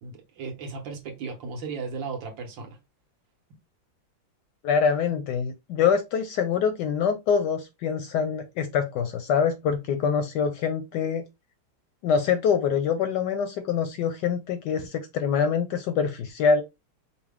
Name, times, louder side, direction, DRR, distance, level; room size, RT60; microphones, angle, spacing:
voice 1, 0.0-2.8, right 4 dB, 70° right, 1.8 m, -35 dB
voice 2, 4.6-11.2 12.0-16.6, left 6 dB, 75° left, 1.0 m, -25 dB
5.5 x 2.2 x 3.5 m
omnidirectional pair, 2.2 m